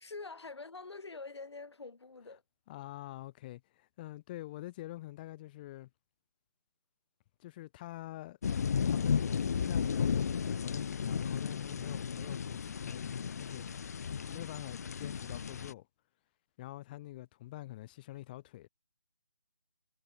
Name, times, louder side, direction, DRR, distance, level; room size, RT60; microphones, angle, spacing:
voice 1, 0.0-2.4, left 3 dB, 85° left, 3.2 m, -45 dB
voice 2, 2.7-5.9 7.4-8.4 8.8-13.6 14.2-15.9 16.6-18.7, left 16 dB, 20° left, 1.5 m, -46 dB
sound 1, 8.4-15.7, left 6 dB, 40° left, 0.4 m, -34 dB
hypercardioid pair, 165°, 14 cm